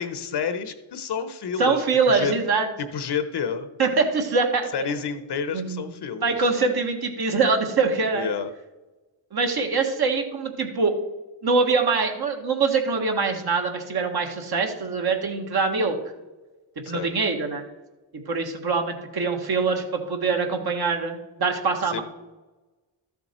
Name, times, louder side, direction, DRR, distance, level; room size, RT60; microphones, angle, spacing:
voice 1, 0.0-2.3 2.8-3.7 4.7-6.5 8.1-8.5 16.8-17.1 21.8-22.0, left 6 dB, 55° left, 10 dB, 1.0 m, -29 dB
voice 2, 1.6-2.7 3.8-4.9 5.5-5.9 6.2-8.3 9.3-10.9 11.4-15.9 16.8-17.6 18.3-22.0, right 4 dB, 55° right, 3 dB, 1.6 m, -24 dB
13.0 x 7.0 x 4.4 m, 1.1 s
cardioid pair, 110°, 47 cm